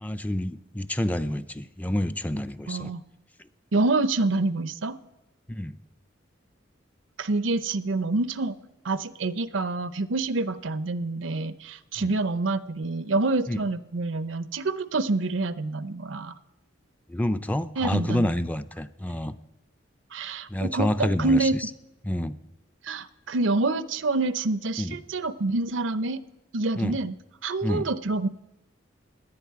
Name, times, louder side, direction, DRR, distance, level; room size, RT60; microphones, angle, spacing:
voice 1, 0.0-2.9 5.5-5.8 12.0-12.1 13.5-13.6 17.1-19.4 20.5-21.7 22.0-22.4 24.7-25.0 26.8-27.0 27.6-27.9, left 1 dB, 10° left, 11 dB, 0.4 m, -28 dB
voice 2, 2.7-3.0 3.7-5.0 7.2-8.6 8.8-16.3 17.8-18.3 20.1-21.6 22.8-26.2 26.5-27.1 27.4-28.3, right 3 dB, 80° right, 15 dB, 0.6 m, -27 dB
17.5 x 10.5 x 4.7 m, 0.93 s
head